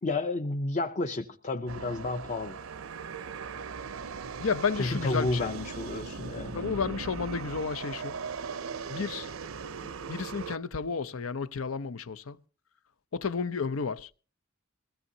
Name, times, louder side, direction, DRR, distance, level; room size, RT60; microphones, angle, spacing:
voice 1, 0.0-2.6 4.8-6.7, left 2 dB, 35° left, 0.7 m, -31 dB
sound 1, 1.7-10.6, right 5 dB, 75° right, 0.6 m, -39 dB
voice 2, 4.4-5.5 6.5-8.2 8.9-9.3 10.1-12.4 13.1-14.3, left 5 dB, 75° left, 0.7 m, -32 dB
22.0 x 17.0 x 2.8 m
head